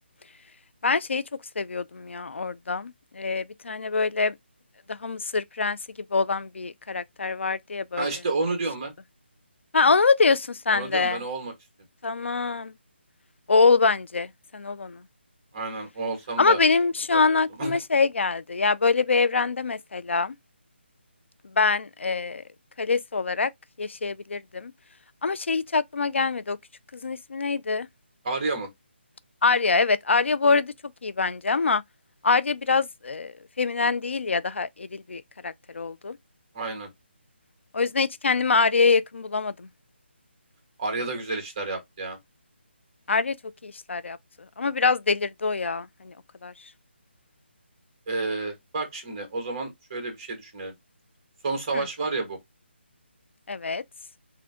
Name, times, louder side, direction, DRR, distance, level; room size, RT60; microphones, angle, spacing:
voice 1, 0.8-1.2 1.6-4.3 4.9-5.8 6.1-8.1 9.7-11.2 12.0-12.7 13.5-15.0 16.4-20.3 21.6-22.4 22.8-23.5 23.8-24.7 25.2-26.6 27.0-27.9 29.4-30.7 31.0-31.8 32.2-36.2 37.7-39.7 43.1-43.4 43.6-44.2 44.6-46.1 46.4-46.5 51.7-51.8 53.5-53.8, left 4 dB, 80° left, 0.4 m, -24 dB
voice 2, 8.0-8.9 10.7-11.5 15.5-16.6 17.1-17.8 28.2-28.7 36.5-36.9 40.8-42.2 48.1-50.7 51.4-52.4, right 3 dB, 25° right, 1.5 m, -30 dB
3.7 x 3.3 x 3.5 m
hypercardioid pair, 175°, 6 cm